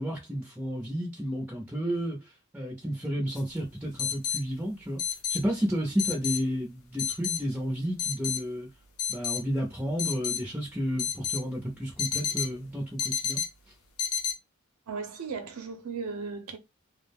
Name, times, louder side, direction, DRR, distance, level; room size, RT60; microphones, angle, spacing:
voice 1, 0.0-5.0 5.3-8.7 9.1-13.4, equal, 5° right, 0.5 m, -32 dB
sound 1, 3.4-3.5 4.0-4.4 5.0-5.4 6.0-6.4 7.0-7.4 8.0-8.4 9.0-9.4 10.0-10.4 11.0-11.4 12.0-12.6 13.0-13.5 14.0-14.3, left 8 dB, 75° left, 0.6 m, -29 dB
voice 2, 14.9-16.6, right 5 dB, 90° right, 0.7 m, -36 dB
2.4 x 2.0 x 3.4 m
head